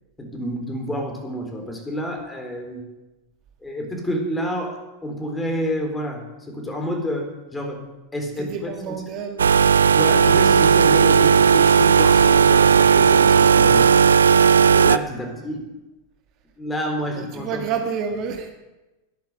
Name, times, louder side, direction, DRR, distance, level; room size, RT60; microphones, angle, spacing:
voice 1, 0.2-2.9 3.6-7.8 8.1-9.0 10.0-14.1 14.7-15.7 16.6-17.6, equal, 10° left, 3 dB, 3.9 m, -29 dB
voice 2, 8.4-9.7 17.1-18.5, right 6 dB, 45° right, 4 dB, 1.9 m, -29 dB
sound 1, 9.4-15.0, right 6 dB, 80° right, 0.4 m, -15 dB
12.5 x 10.5 x 8.0 m, 1.0 s
figure-of-eight pair, 95°, 0 cm